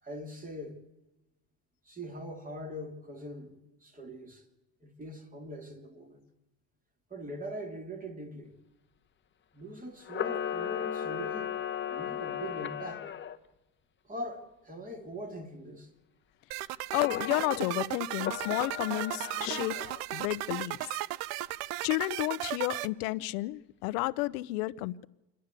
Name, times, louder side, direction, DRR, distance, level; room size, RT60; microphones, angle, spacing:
voice 1, 0.0-0.8 1.8-4.4 4.8-6.2 7.1-8.6 9.5-11.5 11.9-13.1 14.0-15.9, equal, 20° right, 3.0 m, -42 dB
Camera, 10.0-13.4 16.9-17.7 18.2-20.0, left 9 dB, 25° left, 1.0 m, -36 dB
sound 1, 16.5-22.9, right 17 dB, 90° right, 0.7 m, -36 dB
voice 2, 16.9-19.8 20.1-21.0 21.8-25.0, left 20 dB, 90° left, 0.7 m, -31 dB
28.0 x 11.5 x 8.2 m
cardioid pair, 125°, 43 cm